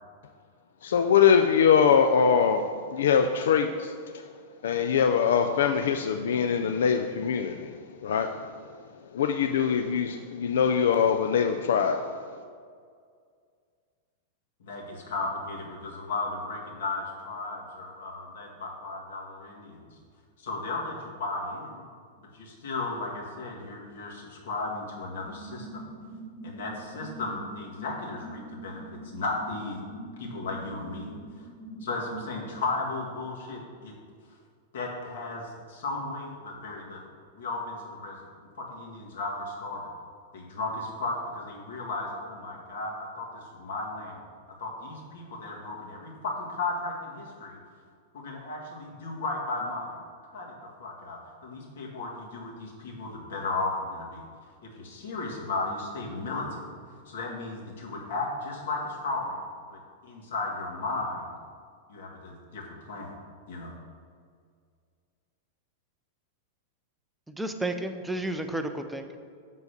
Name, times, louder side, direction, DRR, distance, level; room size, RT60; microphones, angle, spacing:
voice 1, 0.8-4.2 4.6-8.5 9.1-12.3, left 7 dB, 85° left, 6 dB, 0.4 m, -23 dB
voice 2, 14.6-19.9 20.4-21.8 22.2-25.9 26.4-29.8 30.2-31.1 31.4-31.5 31.8-33.9 34.7-37.0 37.3-38.2 38.6-39.9 40.3-44.2 44.6-47.6 48.1-50.0 50.3-50.5 50.8-54.2 54.6-56.7 57.1-59.4 59.7-61.3 61.9-63.2 63.5-63.8, left 3 dB, 70° left, -2 dB, 2.0 m, -35 dB
sound 1, 25.2-32.6, right 1 dB, 35° left, 1.4 m, -44 dB
voice 3, 67.3-69.2, right 1 dB, ahead, 6 dB, 0.3 m, -32 dB
7.3 x 4.0 x 6.7 m, 2.1 s
supercardioid pair, 180°, 0 cm